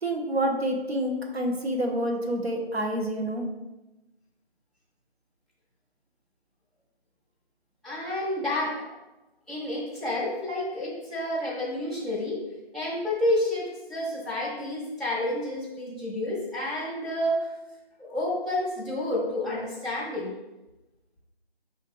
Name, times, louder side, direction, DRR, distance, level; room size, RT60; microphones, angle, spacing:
voice 1, 0.0-3.4, right 1 dB, 80° right, 1 dB, 1.1 m, -28 dB
voice 2, 7.8-8.9 9.5-17.5 18.0-20.3, left 1 dB, ahead, -10 dB, 0.5 m, -30 dB
4.7 x 2.7 x 3.8 m, 1.0 s
figure-of-eight pair, 180°, 31 cm